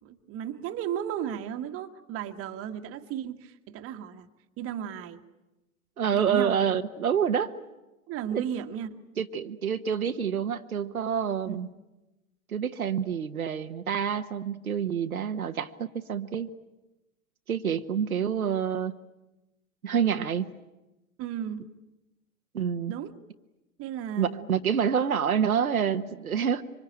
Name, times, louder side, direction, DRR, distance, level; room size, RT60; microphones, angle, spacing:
voice 1, 0.0-4.3 4.6-5.2 6.1-6.5 8.1-9.0 11.4-11.6 21.2-21.7 22.9-23.1 23.8-24.5, right 9 dB, 30° right, 7 dB, 1.6 m, -34 dB
voice 2, 6.0-7.5 8.3-8.4 9.2-11.7 12.5-16.5 17.5-19.0 19.8-20.5 22.5-22.9 24.2-26.6, right 7 dB, 80° right, 7 dB, 1.2 m, -27 dB
26.0 x 24.5 x 8.9 m, 1.0 s
figure-of-eight pair, 100°, 42 cm